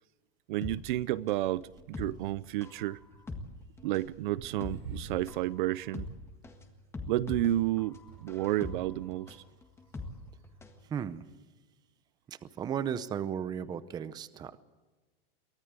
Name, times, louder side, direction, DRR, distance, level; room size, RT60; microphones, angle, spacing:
voice 1, 0.5-3.0 3.8-6.1 7.1-9.4, right 15 dB, 55° right, 0.6 m, -31 dB
sound 1, 0.6-10.8 11.1-11.2, left 2 dB, 10° left, 1.7 m, -43 dB
sound 2, 1.6-2.2 3.0-5.5 5.8-6.3 7.4-8.6 9.4-9.5, right 3 dB, 80° right, 5.3 m, -48 dB
voice 2, 10.9-11.2 12.3-14.6, right 8 dB, 15° right, 0.7 m, -35 dB
24.0 x 17.5 x 8.1 m
supercardioid pair, 160°, 30 cm